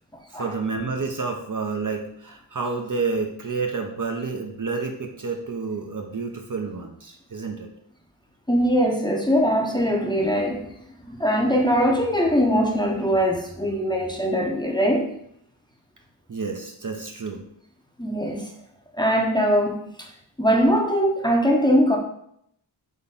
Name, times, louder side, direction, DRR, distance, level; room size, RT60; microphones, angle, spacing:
voice 1, 0.3-7.7 16.3-17.4, right 4 dB, 45° right, 0.7 m, -29 dB
voice 2, 8.5-10.7 11.1-15.1 18.0-18.5 19.0-20.1 20.4-22.0, equal, 10° left, 0.8 m, -21 dB
3.7 x 3.4 x 3.9 m
cardioid pair, 50°, 46 cm